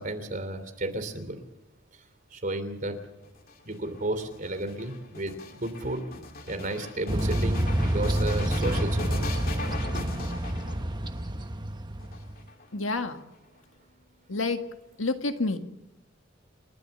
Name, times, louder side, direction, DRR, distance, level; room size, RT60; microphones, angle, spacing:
voice 1, 0.0-1.4 2.3-3.0 3.6-6.0 6.5-9.2, right 2 dB, 45° right, 8 dB, 3.2 m, -33 dB
sound 1, 3.2-11.2 12.0-12.9, left 2 dB, 45° left, 2.4 m, -39 dB
sound 2, 7.1-12.4, right 1 dB, 20° right, 1.1 m, -28 dB
voice 2, 12.7-13.2 14.3-14.6 15.0-15.6, left 3 dB, 85° left, 6 dB, 1.8 m, -28 dB
29.5 x 12.5 x 7.0 m, 0.97 s
head